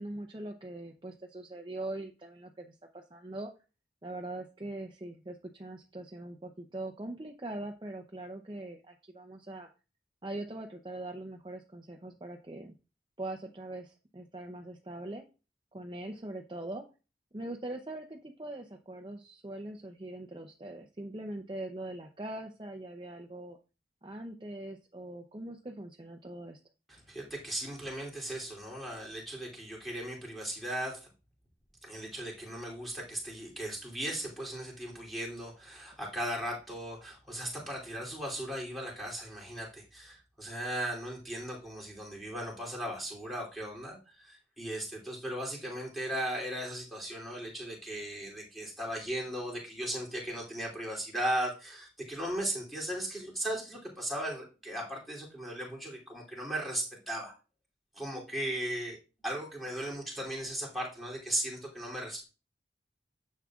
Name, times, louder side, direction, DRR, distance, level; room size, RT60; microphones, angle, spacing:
voice 1, 0.0-3.5 4.0-9.7 10.2-12.7 13.2-15.2 15.7-16.8 17.3-23.6 24.0-26.6, right 1 dB, 25° right, 4 dB, 0.7 m, -42 dB
voice 2, 26.9-31.0 31.8-57.3 57.9-59.0 59.2-62.2, right 1 dB, ahead, -3 dB, 2.9 m, -37 dB
10.5 x 7.4 x 2.4 m, 0.32 s
head